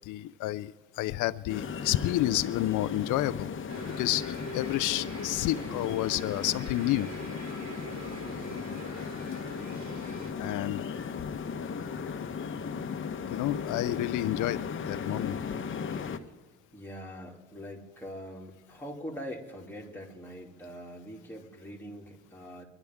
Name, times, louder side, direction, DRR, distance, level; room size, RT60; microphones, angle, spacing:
voice 1, 0.1-0.7 1.0-3.5 4.0-7.1 10.4-10.9 13.3-14.6 14.9-15.3, left 15 dB, 85° left, 15 dB, 0.4 m, -29 dB
sound 1, 1.5-16.2, left 6 dB, 40° left, 1.0 m, -36 dB
sound 2, 3.7-10.3, right 3 dB, 65° right, 3.1 m, -45 dB
voice 2, 8.2-8.6 16.7-22.7, equal, 5° left, -2 dB, 2.7 m, -43 dB
26.0 x 11.0 x 3.5 m, 1.2 s
cardioid pair, 90°, 30 cm